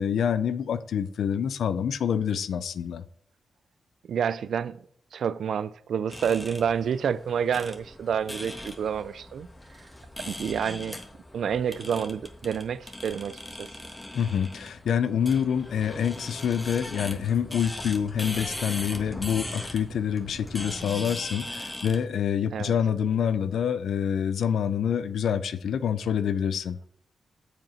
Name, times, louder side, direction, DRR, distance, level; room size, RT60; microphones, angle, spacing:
voice 1, 0.0-3.0 14.1-26.8, left 8 dB, 85° left, 0.4 m, -27 dB
voice 2, 4.1-4.8 5.1-9.5 10.2-11.0 11.3-13.7 22.5-22.7, right 7 dB, 80° right, 0.4 m, -28 dB
sound 1, 6.1-22.1, left 1 dB, 15° left, 1.5 m, -40 dB
7.4 x 5.1 x 5.6 m
cardioid pair, 65°, 0 cm